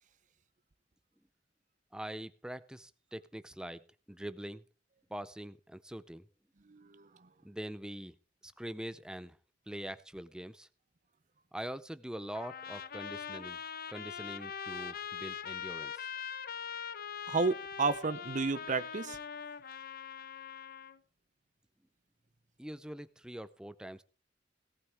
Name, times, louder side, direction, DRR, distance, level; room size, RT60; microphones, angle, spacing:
voice 1, 1.9-4.6 5.1-6.3 7.4-8.2 8.4-9.4 9.7-10.7 11.5-13.6 13.9-16.1 22.6-24.0, right 1 dB, 5° right, 14 dB, 0.5 m, -43 dB
voice 2, 6.7-7.3 17.3-19.2, right 4 dB, 45° right, 13 dB, 0.7 m, -32 dB
Trumpet, 12.3-21.0, left 7 dB, 55° left, 0.8 m, -42 dB
18.0 x 12.5 x 3.4 m, 0.35 s
head